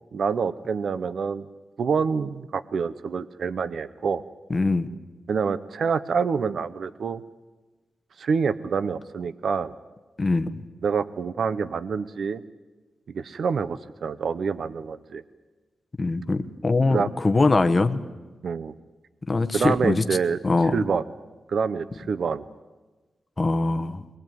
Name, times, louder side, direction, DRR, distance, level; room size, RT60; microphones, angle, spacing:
voice 1, 0.1-1.5 1.8-4.2 5.3-7.2 8.2-9.7 10.8-12.4 13.1-15.2 16.9-17.1 18.4-18.7 19.5-20.4 20.7-21.0 21.5-22.4, right 5 dB, 55° right, 15 dB, 0.7 m, -26 dB
voice 2, 4.5-4.9 10.2-10.6 16.0-18.0 19.3-20.0 20.4-20.7 23.4-24.0, left 3 dB, 20° left, 8 dB, 1.0 m, -22 dB
23.0 x 19.0 x 9.2 m, 1.2 s
wide cardioid pair, 175°, 0 cm